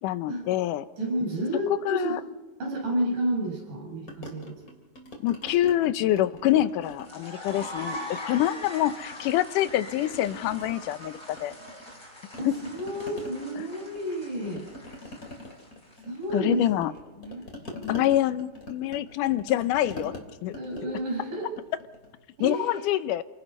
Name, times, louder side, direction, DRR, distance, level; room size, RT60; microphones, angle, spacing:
voice 1, 0.0-0.9 1.9-2.2 5.2-8.0 8.2-11.5 13.6-13.7 14.5-14.6 16.3-16.9 17.9-20.1 20.4-20.6 22.4-23.2, left 13 dB, 85° left, 13 dB, 2.3 m, -26 dB
voice 2, 1.0-2.2 2.6-4.6 7.9-8.1 12.4-14.6 16.0-17.4 20.5-21.5 22.4-23.0, right 1 dB, 75° right, -1 dB, 7.9 m, -31 dB
sound 1, 4.1-5.8 6.1-7.2 7.5-9.3 9.6-12.0 12.3-22.1, left 1 dB, 25° left, 3.2 m, -44 dB
sound 2, 6.8-16.2, left 1 dB, 10° left, 3.6 m, -42 dB
28.0 x 18.5 x 5.5 m, 1.2 s
omnidirectional pair, 3.6 m